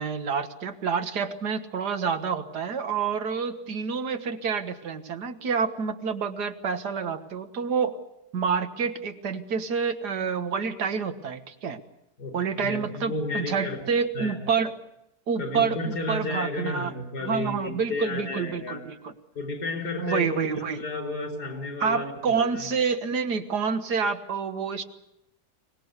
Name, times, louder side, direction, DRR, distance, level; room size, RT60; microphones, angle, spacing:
voice 1, 0.0-8.0 8.3-11.8 12.3-14.7 15.3-16.9 17.2-18.8 20.0-20.8 21.8-24.8, right 6 dB, 85° right, 8 dB, 2.0 m, -28 dB
voice 2, 12.2-13.9 14.1-14.4 15.4-18.9 19.4-20.3 20.6-22.7, left 2 dB, 80° left, 5 dB, 5.1 m, -32 dB
23.5 x 19.5 x 8.1 m, 0.83 s
omnidirectional pair, 1.7 m